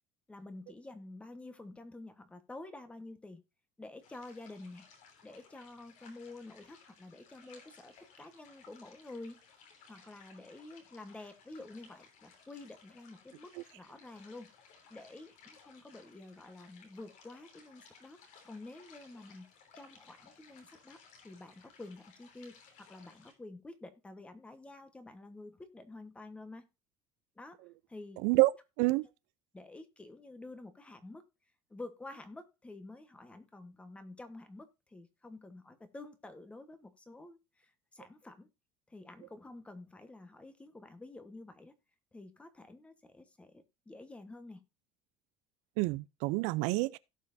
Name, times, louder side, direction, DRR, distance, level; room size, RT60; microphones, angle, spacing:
voice 1, 0.3-3.4 3.8-4.9 5.2-9.4 9.9-14.5 14.9-19.5 19.7-21.0 21.2-26.6 27.4-27.6 27.9-28.2 29.5-31.2 31.7-38.5 38.9-41.7 42.1-44.6, left 2 dB, 10° left, 1.2 m, -49 dB
sound 1, 4.0-23.3, left 5 dB, 60° left, 3.3 m, -60 dB
voice 2, 45.8-47.0, right 22 dB, 70° right, 0.5 m, -27 dB
17.0 x 5.7 x 2.6 m
cardioid pair, 160°, 13 cm